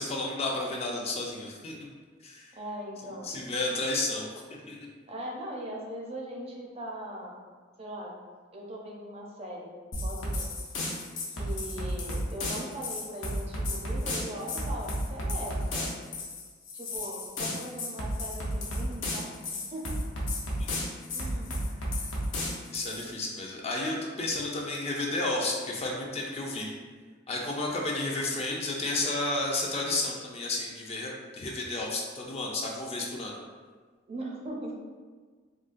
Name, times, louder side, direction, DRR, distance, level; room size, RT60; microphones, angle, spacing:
voice 1, 0.0-1.7 2.2-2.5 3.2-4.8 22.7-26.7 27.3-33.4, left 2 dB, 35° left, -1 dB, 0.4 m, -32 dB
voice 2, 2.5-3.4 5.1-7.4 7.8-8.2 8.5-9.7 10.0-10.5 11.4-15.9 16.7-19.9 21.1-21.7 34.1-34.7, right 1 dB, 30° right, -2 dB, 0.5 m, -40 dB
sound 1, 9.9-23.1, left 1 dB, 70° left, 0.7 m, -33 dB
3.7 x 2.2 x 2.4 m, 1.5 s
head